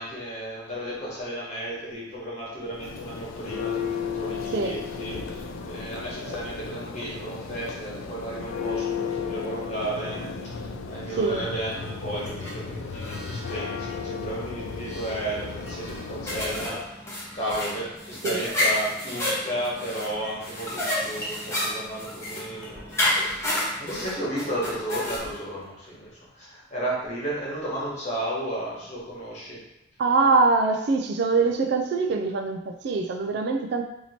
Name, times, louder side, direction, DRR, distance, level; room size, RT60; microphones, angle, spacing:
voice 1, 0.0-16.8 17.3-29.6, right 1 dB, 35° left, -6 dB, 1.2 m, -33 dB
Church bell, 2.6-16.9, left 5 dB, 85° left, 0.4 m, -34 dB
sound 1, 12.0-19.0 19.5-19.7 20.1-20.7 21.0-21.6 22.2-23.8 24.3-25.9, equal, 70° left, 1.0 m, -47 dB
sound 2, 16.3-25.2, left 1 dB, 15° left, 0.8 m, -30 dB
voice 2, 30.0-33.8, right 3 dB, 60° right, 5 dB, 0.3 m, -23 dB
2.9 x 2.7 x 4.2 m, 0.85 s
head